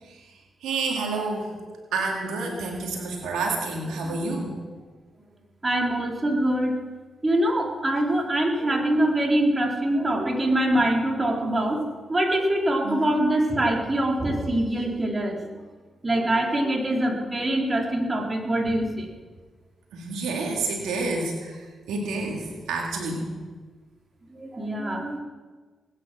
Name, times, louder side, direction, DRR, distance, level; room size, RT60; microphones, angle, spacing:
voice 1, 0.0-0.3 0.6-1.5 1.9-4.6 12.8-13.1 19.9-23.3, right 3 dB, 80° right, 0 dB, 2.3 m, -29 dB
voice 2, 5.6-6.7 7.2-11.8 12.1-15.5 16.0-19.1 24.3-25.2, right 1 dB, 30° right, 0 dB, 3.8 m, -24 dB
20.5 x 9.3 x 6.2 m, 1.4 s
supercardioid pair, 45°, 0 cm